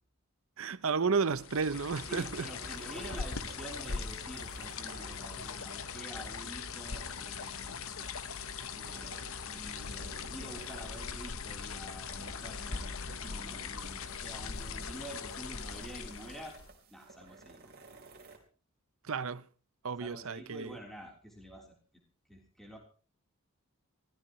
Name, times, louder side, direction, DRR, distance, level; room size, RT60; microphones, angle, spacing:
voice 1, 0.6-2.5 19.0-19.5 19.8-20.8, right 5 dB, 70° right, 0.7 m, -32 dB
sound 1, 1.3-16.7, left 5 dB, 70° left, 1.1 m, -40 dB
sound 2, 1.3-18.4, right 3 dB, 45° right, 3.8 m, -55 dB
voice 2, 2.1-7.9 8.8-13.0 13.2-16.6 16.9-17.7 20.0-21.7 22.3-22.8, right 1 dB, ahead, 3.6 m, -48 dB
23.5 x 16.5 x 3.1 m
head